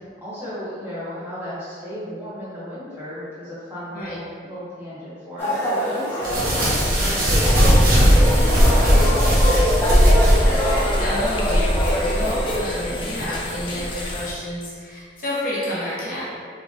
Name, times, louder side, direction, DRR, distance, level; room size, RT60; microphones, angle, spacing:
voice 1, 0.2-10.0, equal, 10° right, -12 dB, 1.4 m, -35 dB
sound 1, 5.4-12.5, equal, 15° left, 1.0 m, -25 dB
sound 2, 6.2-11.0, equal, 50° right, 0.9 m, -17 dB
sound 3, 6.3-14.3, equal, 30° left, 0.4 m, -27 dB
voice 2, 11.0-16.2, left 1 dB, 50° left, -8 dB, 0.9 m, -29 dB
3.8 x 3.5 x 2.6 m, 2.1 s
head